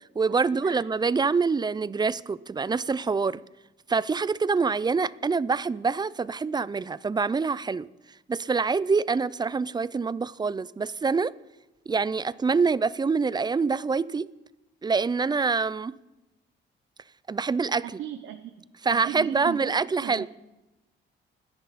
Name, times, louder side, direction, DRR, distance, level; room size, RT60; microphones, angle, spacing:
voice 1, 0.2-3.4 3.9-7.9 8.3-11.3 11.9-14.3 14.8-15.9 17.3-17.8 18.8-20.3, right 4 dB, 20° right, 0.5 m, -25 dB
voice 2, 17.8-19.7 20.0-20.3, right 11 dB, 80° right, 0.9 m, -38 dB
26.0 x 10.5 x 4.2 m
cardioid pair, 90°, 20 cm